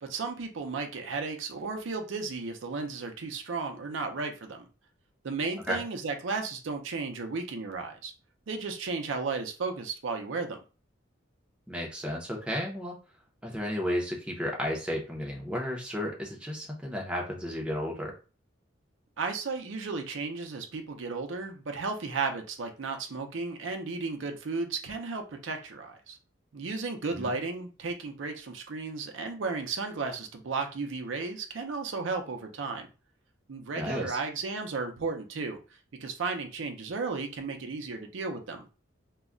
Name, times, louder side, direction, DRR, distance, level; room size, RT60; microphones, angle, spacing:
voice 1, 0.0-4.7 5.2-8.1 8.5-10.6 19.2-26.2 26.5-32.9 33.5-35.6 36.0-38.6, right 4 dB, 70° right, 4 dB, 0.5 m, -34 dB
voice 2, 11.7-13.0 13.4-18.1 27.1-27.3 33.8-34.2, equal, 5° right, -1 dB, 0.6 m, -33 dB
2.2 x 2.1 x 3.6 m, 0.34 s
head